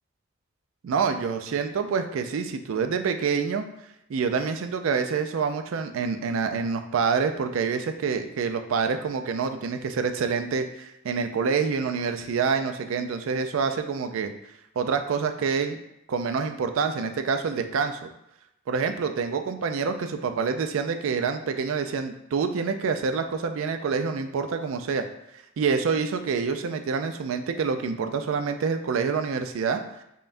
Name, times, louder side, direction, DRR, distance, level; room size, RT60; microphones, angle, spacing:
voice 1, 0.8-3.6 4.1-14.3 14.8-15.8 16.1-18.0 18.7-25.1 25.6-29.8, right 5 dB, 75° right, 7 dB, 0.3 m, -27 dB
5.4 x 2.2 x 2.5 m, 0.82 s
head